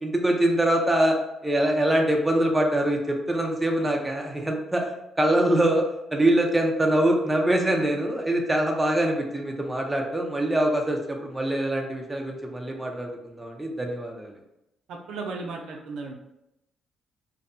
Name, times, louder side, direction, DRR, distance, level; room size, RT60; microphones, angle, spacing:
voice 1, 0.0-4.9 5.2-5.9 6.1-14.3, right 1 dB, 10° right, 1 dB, 0.5 m, -24 dB
voice 2, 14.9-16.1, right 3 dB, 80° right, 1 dB, 0.4 m, -35 dB
2.6 x 2.1 x 2.5 m, 0.85 s
cardioid pair, 90°, 0 cm